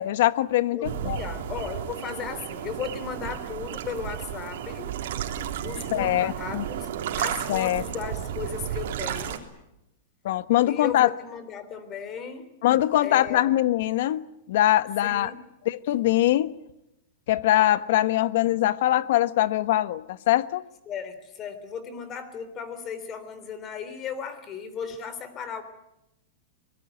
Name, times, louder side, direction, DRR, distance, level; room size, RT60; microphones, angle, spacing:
voice 1, 0.0-1.2 5.9-6.6 7.5-7.8 10.2-11.1 12.6-15.3 15.6-16.5 17.3-20.6, left 14 dB, 60° left, 14 dB, 1.2 m, -23 dB
voice 2, 0.7-4.9 5.6-6.9 7.2-9.4 10.7-12.5 13.0-13.5 15.0-15.4 20.9-25.6, left 6 dB, 25° left, 11 dB, 3.4 m, -36 dB
sound 1, 0.8-9.4, right 10 dB, 65° right, 3.4 m, -33 dB
25.0 x 20.5 x 9.2 m, 0.88 s
supercardioid pair, 160°, 0 cm